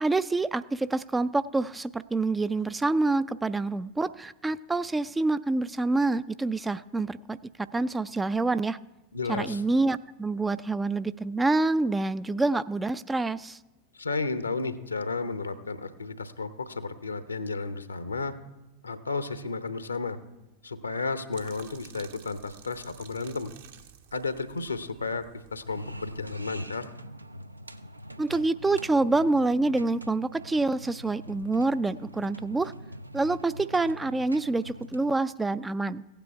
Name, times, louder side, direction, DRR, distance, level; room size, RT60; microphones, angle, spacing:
voice 1, 0.0-8.8 9.3-13.6 28.2-32.7 33.1-36.0, right 2 dB, 10° right, 15 dB, 0.3 m, -27 dB
voice 2, 9.1-9.6 13.9-18.3 18.8-20.2 20.6-23.5 24.1-26.9, left 3 dB, 80° left, 12 dB, 0.8 m, -33 dB
sound 1, 21.3-26.3, right 9 dB, 55° right, 1.0 m, -52 dB
sound 2, 25.7-35.2, equal, 85° right, 0.5 m, -44 dB
16.0 x 9.0 x 4.7 m, 1.0 s
figure-of-eight pair, 90°, 0 cm